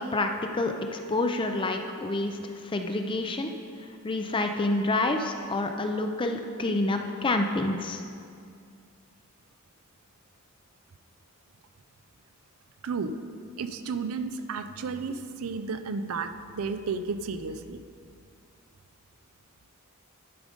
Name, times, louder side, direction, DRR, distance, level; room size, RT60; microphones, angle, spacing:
voice 1, 0.0-3.5 4.0-8.0, left 2 dB, 25° left, 5 dB, 0.4 m, -28 dB
voice 2, 12.8-13.1 13.6-16.3 16.5-17.8, right 4 dB, 75° right, 9 dB, 0.4 m, -32 dB
11.0 x 5.0 x 5.1 m, 2.3 s
head